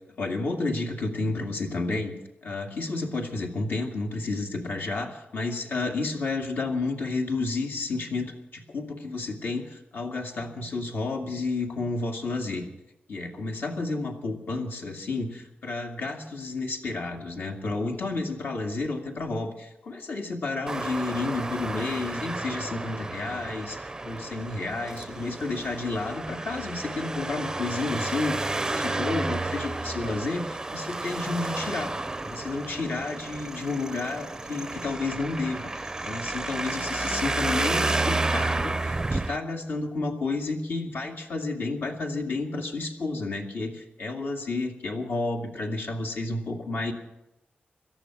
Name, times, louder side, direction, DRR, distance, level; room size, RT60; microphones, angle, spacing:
voice 1, 0.2-2.1 2.4-12.7 13.1-31.9 32.2-35.6 36.0-46.9, left 3 dB, 65° left, 2 dB, 2.3 m, -31 dB
Traffic noise roadway noise, 20.7-39.4, right 2 dB, 15° right, 0.5 m, -31 dB
18.0 x 13.5 x 6.0 m, 0.90 s
wide cardioid pair, 160°, 4 cm